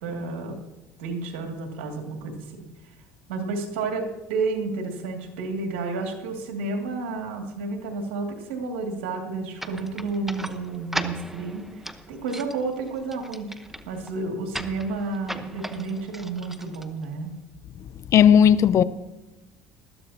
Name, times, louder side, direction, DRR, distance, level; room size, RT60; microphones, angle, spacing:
voice 1, 0.0-0.6 1.0-2.6 3.3-11.7 12.1-13.5 13.9-17.4, right 3 dB, 90° right, 2.4 m, -31 dB
sound 1, 9.6-17.4, right 1 dB, 5° right, 1.0 m, -38 dB
voice 2, 18.1-18.8, left 8 dB, 50° left, 0.6 m, -15 dB
20.0 x 13.5 x 2.8 m
supercardioid pair, 85°, 6 cm